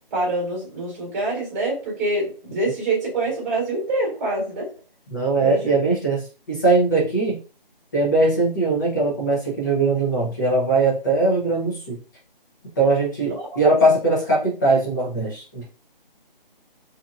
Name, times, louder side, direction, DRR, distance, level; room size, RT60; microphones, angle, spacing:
voice 1, 0.1-4.7 5.4-5.6 13.3-13.7, right 2 dB, 20° right, -4 dB, 1.4 m, -25 dB
voice 2, 5.1-7.4 7.9-12.0 12.8-15.7, right 2 dB, 20° left, -3 dB, 0.8 m, -20 dB
2.7 x 2.7 x 2.4 m, 0.35 s
figure-of-eight pair, 160°, 29 cm